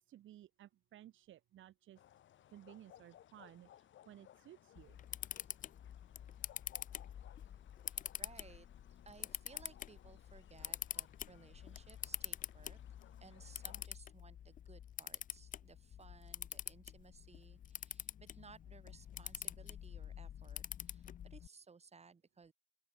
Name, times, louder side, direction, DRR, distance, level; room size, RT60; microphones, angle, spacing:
voice 1, 0.0-2.0 2.5-5.0, right 13 dB, 80° right, 3.6 m, -58 dB
sound 1, 2.0-13.9, left 11 dB, 75° left, 3.8 m, -64 dB
Camera, 4.8-21.5, left 10 dB, 40° left, 0.4 m, -47 dB
voice 2, 7.9-12.8 13.2-22.5, right 5 dB, 35° right, 3.3 m, -61 dB
open air
cardioid pair, 90°, 20 cm